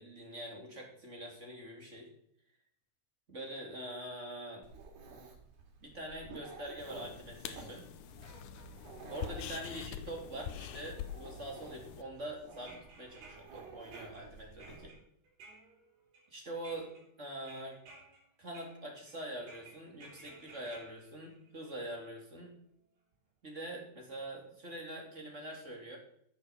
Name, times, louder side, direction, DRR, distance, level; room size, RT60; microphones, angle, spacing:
voice 1, 0.0-2.1 3.3-4.7 5.8-7.8 9.1-14.9 16.3-16.9 17.2-17.8 18.4-22.5 23.4-26.0, right 1 dB, 20° right, 0 dB, 2.5 m, -44 dB
Dog, 4.6-14.9, right 4 dB, 90° right, 4.3 m, -53 dB
sound 1, 6.8-12.0, left 10 dB, 75° left, 1.9 m, -45 dB
sound 2, 12.5-16.3 16.6-17.1 17.4-18.2 18.5-19.1 19.5-22.1 23.1-23.2 24.3-24.4 24.8-24.9, right 3 dB, 65° right, 5.2 m, -56 dB
14.5 x 6.7 x 7.1 m, 0.70 s
omnidirectional pair, 4.2 m